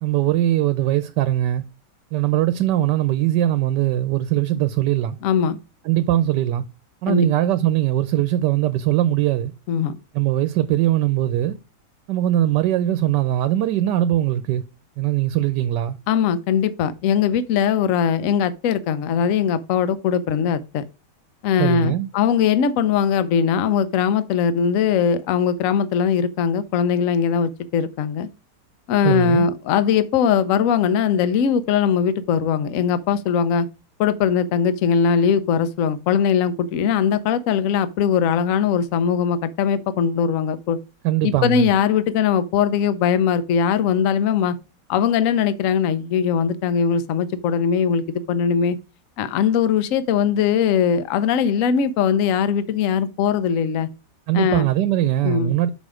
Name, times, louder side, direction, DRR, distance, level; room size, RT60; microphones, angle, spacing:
voice 1, 0.0-1.6 2.1-5.2 5.8-6.6 7.0-9.5 10.1-11.6 12.1-14.6 15.0-16.0 21.6-22.1 29.0-29.5 41.0-41.7 54.3-55.7, right 13 dB, 80° right, 1.2 m, -21 dB
voice 2, 5.2-5.6 7.1-7.3 9.7-10.0 16.1-20.8 21.4-28.3 28.9-33.7 34.0-40.8 41.2-44.5 44.9-48.8 49.2-53.9 54.3-54.7 55.2-55.5, left 7 dB, 60° left, 0.9 m, -20 dB
6.3 x 5.5 x 4.8 m
omnidirectional pair, 1.9 m